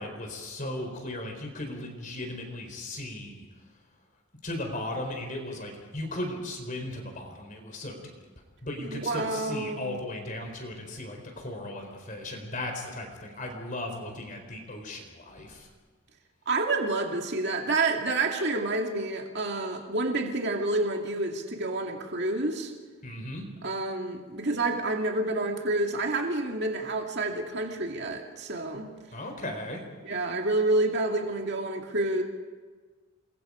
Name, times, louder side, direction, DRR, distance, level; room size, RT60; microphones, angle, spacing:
voice 1, 0.0-3.5 4.4-8.2 8.6-15.7 23.0-23.5 29.1-29.8, left 1 dB, 35° left, 3 dB, 4.0 m, -36 dB
voice 2, 8.8-10.0 16.5-22.7 23.6-28.9 30.0-32.2, right 2 dB, 50° right, 2 dB, 2.2 m, -28 dB
29.5 x 22.0 x 5.0 m, 1.5 s
head